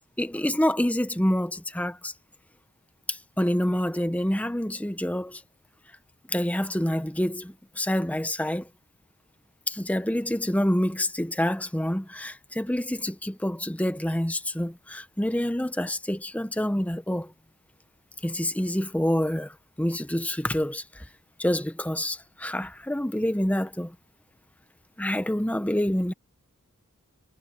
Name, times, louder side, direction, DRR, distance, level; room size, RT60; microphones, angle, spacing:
voice 1, 0.2-2.1 3.1-5.4 6.3-8.7 9.7-17.3 18.2-21.1 21.4-23.9 25.0-26.1, left 1 dB, 5° left, 0.9 m, -27 dB
head